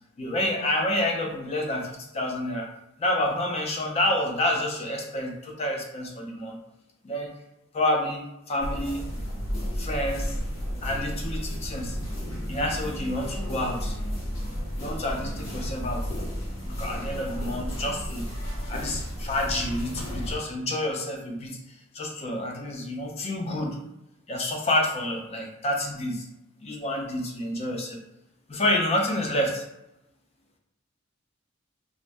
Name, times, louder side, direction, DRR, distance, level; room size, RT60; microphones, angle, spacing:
voice 1, 0.2-2.7 3.0-6.6 7.0-7.3 7.7-9.1 9.8-10.4 10.8-12.0 12.5-14.0 14.8-16.1 16.6-18.3 18.7-21.6 21.9-23.8 24.3-26.3 26.6-28.0 28.5-29.6, left 1 dB, 30° left, 1 dB, 0.4 m, -28 dB
sound 1, 8.6-20.4, equal, 70° left, 0.8 m, -32 dB
2.5 x 2.1 x 3.3 m, 0.86 s
head